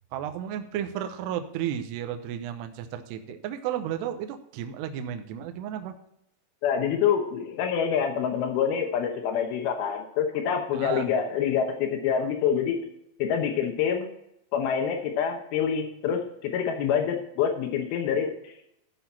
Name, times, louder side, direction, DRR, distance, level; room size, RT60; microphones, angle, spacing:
voice 1, 0.1-5.9 10.7-11.1, right 10 dB, 85° right, 7 dB, 2.4 m, -33 dB
voice 2, 6.6-12.9 13.2-14.1 14.5-18.5, left 7 dB, 90° left, 4 dB, 2.1 m, -26 dB
14.0 x 6.0 x 4.2 m, 0.79 s
omnidirectional pair, 5.9 m